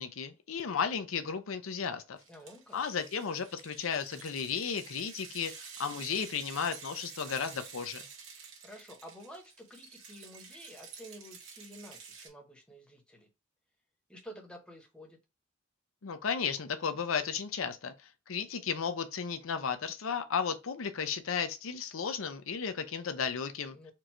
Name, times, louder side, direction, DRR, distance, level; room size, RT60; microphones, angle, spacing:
voice 1, 0.0-2.2 2.7-8.0 16.0-17.9 18.3-23.8, left 6 dB, 85° left, 0.6 m, -34 dB
sound 1, 2.2-12.3, right 6 dB, 75° right, 1.7 m, -50 dB
voice 2, 2.3-2.8 8.6-13.3 14.1-15.2 23.7-23.9, equal, 5° left, 1.1 m, -50 dB
4.5 x 2.5 x 4.5 m
head